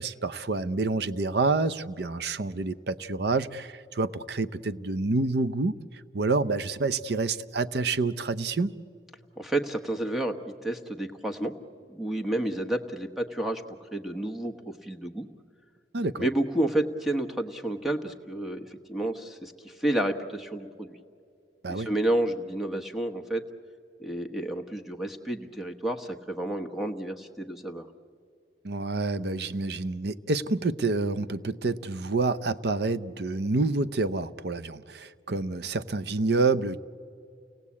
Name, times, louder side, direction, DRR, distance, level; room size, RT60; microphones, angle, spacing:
voice 1, 0.0-5.8 6.1-8.8 15.9-16.3 21.6-21.9 28.6-36.8, right 3 dB, 60° right, 0.7 m, -28 dB
voice 2, 9.4-11.5 11.9-13.6 13.9-15.3 16.2-21.0 21.7-23.4 24.0-27.9, right 1 dB, ahead, 1.2 m, -30 dB
29.5 x 18.5 x 8.5 m
head